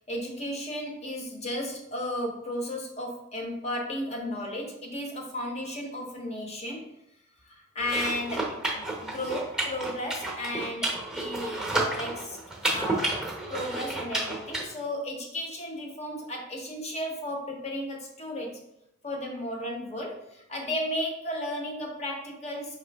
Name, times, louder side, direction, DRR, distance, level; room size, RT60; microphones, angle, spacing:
voice 1, 0.1-6.9 7.4-12.4 12.6-18.6 19.0-22.8, left 1 dB, 30° left, 2 dB, 0.9 m, -34 dB
sound 1, 7.8-14.6, right 2 dB, 5° right, 0.8 m, -31 dB
5.0 x 3.1 x 3.4 m, 0.82 s
head